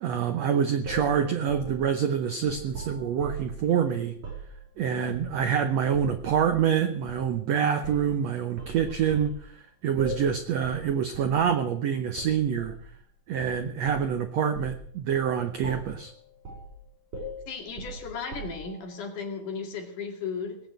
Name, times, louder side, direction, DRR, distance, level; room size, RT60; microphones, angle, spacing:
voice 1, 0.0-4.2 4.8-12.8 13.3-16.1, right 8 dB, 80° right, 8 dB, 1.5 m, -26 dB
sound 1, 0.8-3.6 4.2-4.5 5.1-5.6 5.9-6.5 7.1-7.3 7.8-8.2 8.6-9.4 10.0-10.3 10.6-10.9 11.1-11.4 12.2-12.8 13.4-14.2 14.5-14.8 15.1-15.3 15.6-16.0 16.4-16.7 17.1-18.8, right 2 dB, 50° right, 5.5 m, -39 dB
voice 2, 17.5-20.6, left 5 dB, 60° left, 3 dB, 3.7 m, -35 dB
19.5 x 8.7 x 8.0 m, 0.66 s
omnidirectional pair, 4.3 m